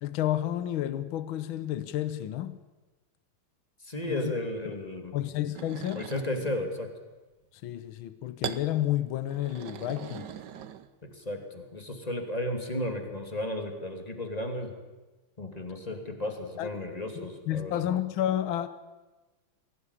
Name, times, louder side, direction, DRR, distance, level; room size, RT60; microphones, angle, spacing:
voice 1, 0.0-2.6 4.1-4.3 5.1-6.1 7.6-10.3 16.6-18.7, left 12 dB, 70° left, 1.7 m, -31 dB
voice 2, 3.8-5.1 5.9-6.9 11.0-14.7 15.4-17.7, left 1 dB, 15° left, 2.6 m, -34 dB
sound 1, 5.5-6.6 8.4-8.7 9.3-11.1, right 9 dB, 60° right, 1.4 m, -40 dB
22.0 x 17.0 x 9.8 m
omnidirectional pair, 2.4 m